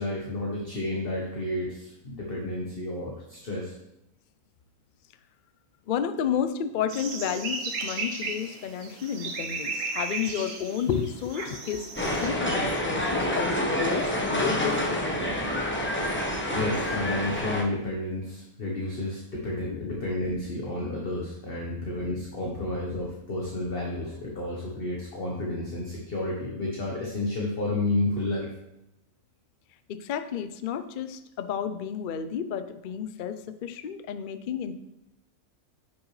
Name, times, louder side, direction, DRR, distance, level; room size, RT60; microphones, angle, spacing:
voice 1, 0.0-3.7 16.5-28.5, left 2 dB, 40° left, -2 dB, 1.3 m, -31 dB
voice 2, 5.9-15.4 19.7-20.0 21.6-22.0 29.9-34.8, left 8 dB, 80° left, 10 dB, 0.4 m, -32 dB
sound 1, 6.9-12.3, right 3 dB, 60° right, 1.3 m, -35 dB
sound 2, 12.0-17.6, left 1 dB, 10° left, 0.8 m, -27 dB
9.6 x 6.1 x 3.2 m, 0.88 s
omnidirectional pair, 1.6 m